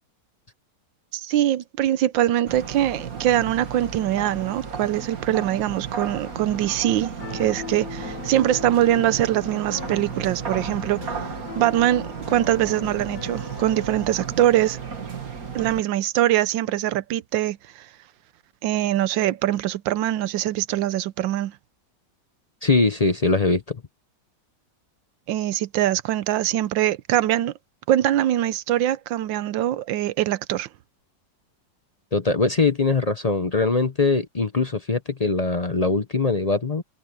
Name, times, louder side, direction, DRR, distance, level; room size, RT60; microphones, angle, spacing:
voice 1, 1.1-14.8 15.5-17.9 18.6-21.6 25.3-27.5 27.9-30.7, right 13 dB, 85° right, 1.4 m, -23 dB
sound 1, 2.5-15.8, right 6 dB, 50° right, 2.4 m, -34 dB
Piano, 7.2-14.0, left 6 dB, 65° left, 1.9 m, -39 dB
voice 2, 22.6-23.8 32.1-36.8, left 3 dB, 35° left, 0.6 m, -22 dB
omnidirectional pair, 2.0 m